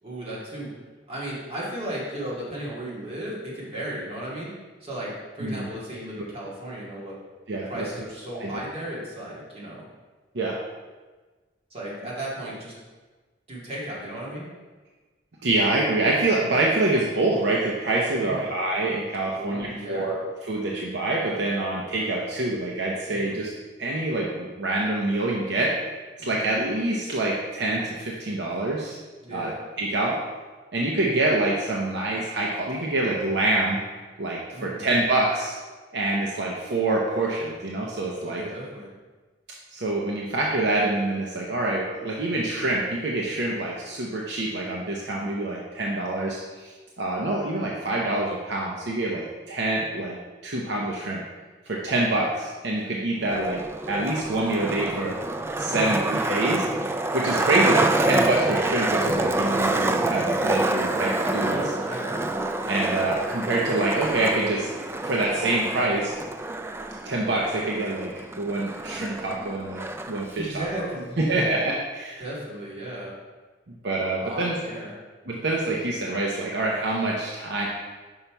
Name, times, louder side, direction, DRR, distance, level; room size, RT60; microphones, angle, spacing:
voice 1, 0.0-0.7 1.1-4.5 4.8-7.2 7.6-9.8 11.7-12.7 13.5-14.5 18.2-18.5 19.3-20.1 23.1-23.4 26.2-26.5 29.2-29.6 34.5-34.8 38.2-38.9 55.7-56.0 61.5-62.1 70.3-71.6 72.2-73.1 74.2-75.0, right 1 dB, 35° right, -6 dB, 2.1 m, -35 dB
voice 2, 7.5-7.9 8.3-8.6 10.3-10.6 15.4-23.5 23.8-25.7 26.2-29.0 29.3-29.5 29.8-30.2 30.7-33.8 34.2-35.6 35.9-38.4 39.7-50.2 50.4-51.2 51.7-53.6 53.9-55.2 55.6-61.6 62.6-64.7 65.0-66.1 67.0-69.8 70.1-70.9 71.2-72.2 73.7-74.6 75.3-77.7, right 2 dB, 65° right, -3 dB, 0.8 m, -26 dB
Skateboard, 53.2-70.2, right 2 dB, 15° right, 0.3 m, -27 dB
5.6 x 5.6 x 4.6 m, 1.3 s
head